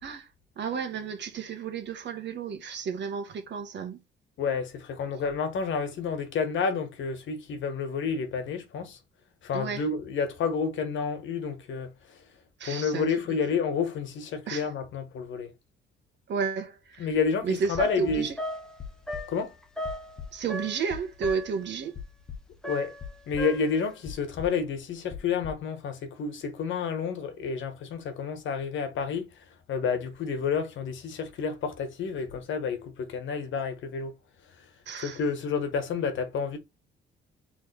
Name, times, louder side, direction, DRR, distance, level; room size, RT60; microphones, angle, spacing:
voice 1, 0.6-4.0 9.5-9.8 12.6-13.1 14.5-14.7 16.3-17.1 17.4-18.4 20.3-21.9 34.9-35.2, right 6 dB, 65° right, 1.4 m, -32 dB
voice 2, 4.4-9.0 9.4-12.2 12.6-15.5 17.0-18.3 19.3-19.5 22.6-22.9 23.3-29.3 29.7-34.1 35.0-36.6, left 5 dB, 75° left, 1.3 m, -30 dB
sound 1, 17.3-17.4 17.6-18.5 18.8-19.4 19.8-20.5 20.9-21.7 21.9-22.6 23.0-23.8 24.1-25.6, left 7 dB, 35° left, 1.3 m, -42 dB
sound 2, 17.8-20.9 21.2-21.7 22.6-23.9, left 1 dB, 5° left, 1.2 m, -37 dB
4.4 x 3.5 x 3.3 m
cardioid pair, 90°, 20 cm